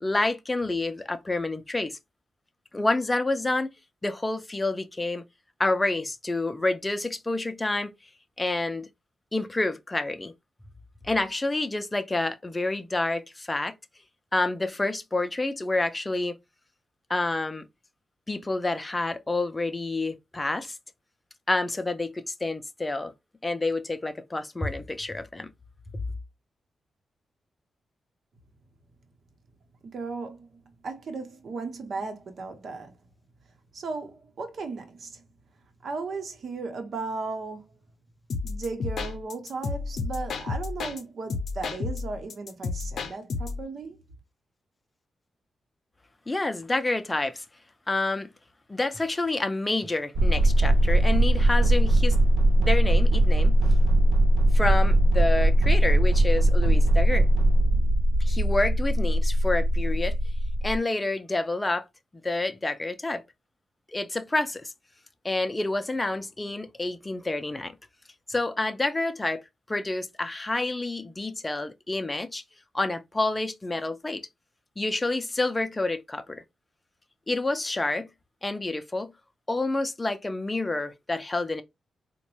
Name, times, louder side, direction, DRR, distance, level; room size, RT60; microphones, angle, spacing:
voice 1, 0.0-2.0 2.7-3.7 4.0-5.2 5.6-7.9 8.4-8.9 9.3-10.3 11.0-13.7 14.3-16.3 17.1-17.6 18.3-20.8 21.5-23.1 23.4-25.5 46.3-47.4 47.9-48.3 48.7-52.2 52.6-53.6 54.5-57.3 58.2-60.1 60.6-61.9 62.2-63.2 63.9-64.7 65.2-67.7 68.3-69.4 69.7-72.4 72.7-74.2 74.8-76.4 77.3-78.1 78.4-79.1 79.5-81.6, left 2 dB, 20° left, 0.4 m, -28 dB
voice 2, 29.8-33.0 33.7-35.2 35.8-37.7 38.4-44.0, right 4 dB, 65° right, 0.9 m, -36 dB
sound 1, 38.3-41.0 41.3-43.6, left 4 dB, 80° left, 0.5 m, -32 dB
sound 2, 50.2-60.8, right 1 dB, 90° right, 0.5 m, -20 dB
3.9 x 2.2 x 3.0 m
cardioid pair, 90°, 0 cm